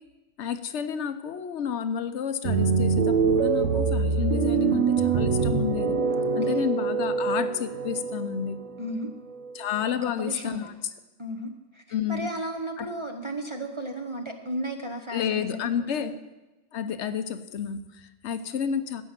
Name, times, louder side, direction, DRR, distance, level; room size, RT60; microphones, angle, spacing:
voice 1, 0.4-5.9 6.3-8.6 9.5-10.7 11.9-12.3 12.8-12.9 15.1-16.1 16.7-19.0, left 8 dB, 65° left, 11 dB, 1.0 m, -30 dB
sound 1, 2.4-9.9, right 5 dB, 75° right, 1.4 m, -25 dB
voice 2, 8.8-9.1 9.9-10.7 11.2-15.7 16.0-16.2, right 1 dB, 25° right, 2 dB, 0.8 m, -34 dB
15.5 x 5.7 x 7.3 m, 1.1 s
omnidirectional pair, 1.3 m